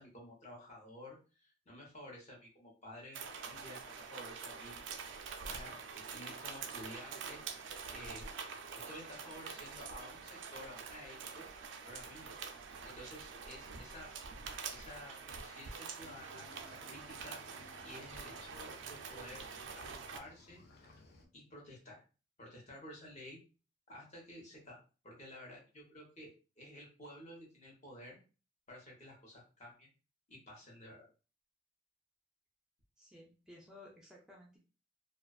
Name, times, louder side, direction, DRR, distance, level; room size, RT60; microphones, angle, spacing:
voice 1, 0.0-4.8 5.4-7.4 7.9-8.3 8.9-11.4 11.9-12.3 12.8-14.1 14.7-17.4 17.8-19.5 19.7-20.6 21.3-22.0 22.4-23.4 23.9-24.8 25.0-26.3 26.6-28.2 28.7-29.9 30.3-31.0, left 1 dB, 40° left, -2 dB, 0.9 m, -52 dB
sound 1, 3.1-20.2, right 5 dB, 85° right, 0.3 m, -46 dB
Cricket / Waves surf, 16.0-21.3, left 3 dB, 60° left, 0.5 m, -60 dB
voice 2, 33.0-34.6, left 1 dB, 5° right, -3 dB, 0.4 m, -56 dB
2.3 x 2.3 x 2.3 m, 0.35 s
head